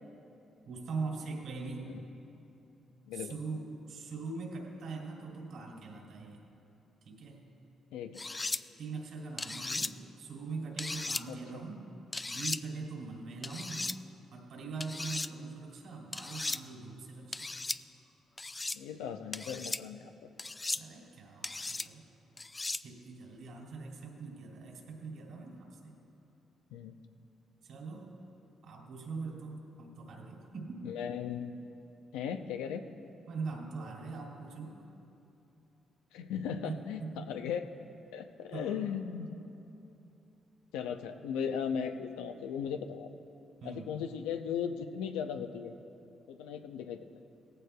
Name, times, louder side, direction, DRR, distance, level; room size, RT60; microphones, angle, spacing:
voice 1, 0.6-1.9 3.1-6.4 7.0-7.4 8.8-11.9 12.3-13.9 14.3-17.5 20.7-22.0 22.8-26.0 27.6-28.1 28.6-30.8 33.3-34.8 36.6-37.3 38.5-38.9 43.6-43.9, right 4 dB, 75° right, -1 dB, 2.9 m, -42 dB
voice 2, 7.9-8.2 11.3-11.6 18.7-20.3 26.7-27.0 30.8-31.5 32.1-32.8 36.1-37.6 38.1-39.4 40.7-43.1 43.6-45.7 46.3-47.0, left 7 dB, 90° left, 7 dB, 0.6 m, -37 dB
sound 1, 8.2-8.6 9.4-9.9 10.8-11.2 12.1-12.6 13.4-14.0 14.8-15.3 16.1-16.6 17.3-17.8 18.4-18.8 19.3-19.8 20.4-20.8 21.4-21.9 22.4-22.8, left 3 dB, 25° left, 0.4 m, -36 dB
18.0 x 15.0 x 2.3 m, 2.9 s
supercardioid pair, 55°, 0 cm